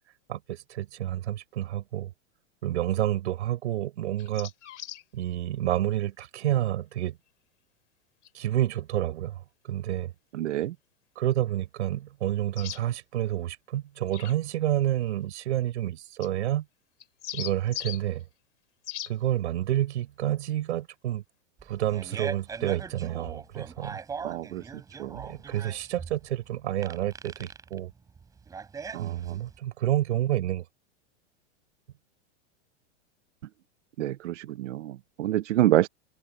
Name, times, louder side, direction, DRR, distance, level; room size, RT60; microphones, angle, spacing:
voice 1, 0.3-2.1 2.6-4.5 5.1-7.2 8.3-10.1 11.2-16.7 17.3-18.2 19.1-21.2 21.6-24.0 25.2-27.9 29.0-30.6, right 13 dB, 75° right, 5.3 m, -29 dB
sound 1, 4.2-5.0 8.2-8.3 12.6-12.8 14.1-14.3 16.2-16.3 17.0-18.0 18.8-19.1, left 11 dB, 90° left, 7.0 m, -38 dB
voice 2, 10.3-10.7 24.2-24.6 25.0-25.2 28.9-29.4 34.0-35.9, right 14 dB, 90° right, 1.2 m, -27 dB
Fart, 21.6-29.6, right 5 dB, 10° right, 6.1 m, -40 dB
supercardioid pair, 180°, 35 cm